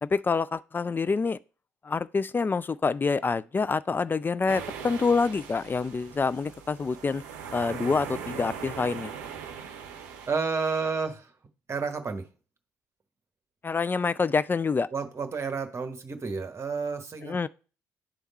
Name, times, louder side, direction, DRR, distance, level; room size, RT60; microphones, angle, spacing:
voice 1, 0.0-1.4 1.8-7.2 7.5-9.1 13.6-14.9 17.2-17.5, left 4 dB, 20° left, 0.3 m, -27 dB
sound 1, 4.5-10.4, right 7 dB, 70° right, 0.6 m, -40 dB
voice 2, 10.3-11.3 11.7-12.2 14.9-17.5, right 4 dB, 30° right, 1.2 m, -31 dB
10.0 x 3.5 x 4.1 m
figure-of-eight pair, 45°, 9 cm